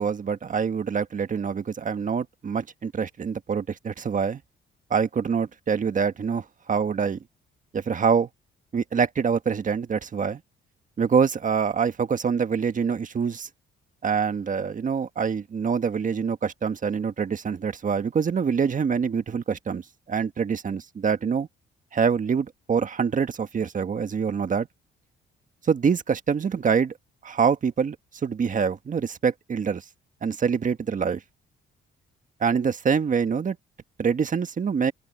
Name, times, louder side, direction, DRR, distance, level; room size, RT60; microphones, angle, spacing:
voice 1, 0.0-4.4 4.9-7.2 7.7-8.3 8.7-10.4 11.0-13.5 14.0-21.5 21.9-24.7 25.6-26.9 27.2-28.0 28.2-29.8 30.2-31.2 32.4-33.6 34.0-34.9, right 6 dB, 40° right, 1.5 m, -25 dB
open air
cardioid pair, 90°, 20 cm